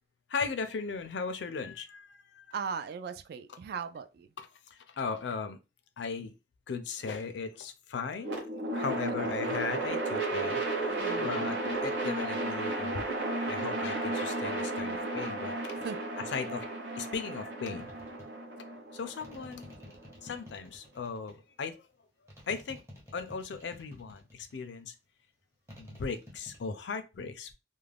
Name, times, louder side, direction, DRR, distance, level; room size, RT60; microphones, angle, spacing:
voice 1, 0.3-2.4 4.4-5.6 6.0-6.3 6.7-8.4 8.7-13.1 13.5-15.6 16.3-17.9 18.9-19.8 20.2-21.8 22.5-22.8 23.1-24.9 25.8-27.5, left 5 dB, 70° left, 0.4 m, -37 dB
voice 2, 2.5-4.3 9.1-9.2 11.0-11.8 15.8-16.0, right 6 dB, 60° right, 0.3 m, -39 dB
sound 1, 8.2-20.3, right 2 dB, 75° right, 0.9 m, -34 dB
sound 2, 17.7-18.3 19.2-21.4 22.3-24.6 25.7-26.7, left 1 dB, 15° right, 0.8 m, -51 dB
2.4 x 2.1 x 3.3 m
head